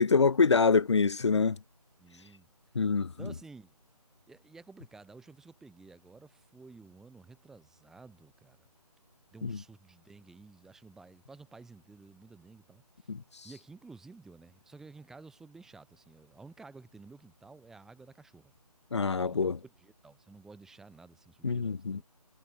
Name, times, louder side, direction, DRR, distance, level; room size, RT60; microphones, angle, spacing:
voice 1, 0.0-1.6 2.8-3.1 9.4-9.6 13.1-13.2 18.9-19.6 21.4-22.0, left 4 dB, 45° left, 2.0 m, -25 dB
voice 2, 2.0-2.5 3.1-3.7 4.3-8.7 9.3-13.1 13.4-18.5 19.3-22.0, right 3 dB, ahead, 6.8 m, -53 dB
figure-of-eight pair, 170°, 20 cm